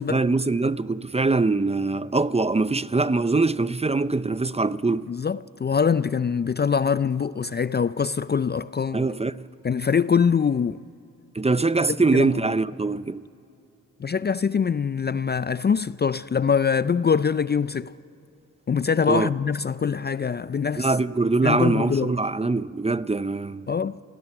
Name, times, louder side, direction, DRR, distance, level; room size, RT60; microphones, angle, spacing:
voice 1, 0.1-5.1 8.9-9.5 11.3-13.3 19.1-19.3 20.8-23.7, right 3 dB, 20° right, 0.6 m, -23 dB
voice 2, 5.1-9.0 9.6-10.8 12.1-12.3 14.0-17.9 18.7-20.9 21.4-22.1 23.7-24.0, left 6 dB, 30° left, 0.4 m, -23 dB
28.0 x 17.5 x 6.0 m
supercardioid pair, 45°, 34 cm